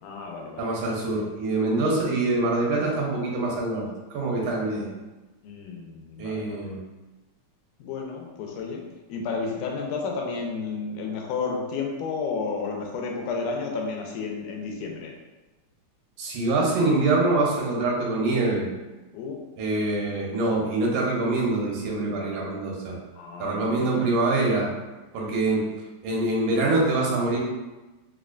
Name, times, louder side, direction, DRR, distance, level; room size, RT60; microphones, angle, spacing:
voice 1, 0.0-0.7 4.4-4.5 5.4-6.6 7.8-8.8 9.1-15.1 19.1-19.4 22.2-22.3 23.2-23.7, left 4 dB, 90° left, 0 dB, 2.1 m, -32 dB
voice 2, 0.6-4.9 6.2-6.8 16.2-18.7 19.6-23.0 23.4-24.7 25.1-25.7 26.0-27.4, right 2 dB, 85° right, -2 dB, 2.3 m, -25 dB
5.3 x 2.1 x 2.4 m, 1.1 s
omnidirectional pair, 3.5 m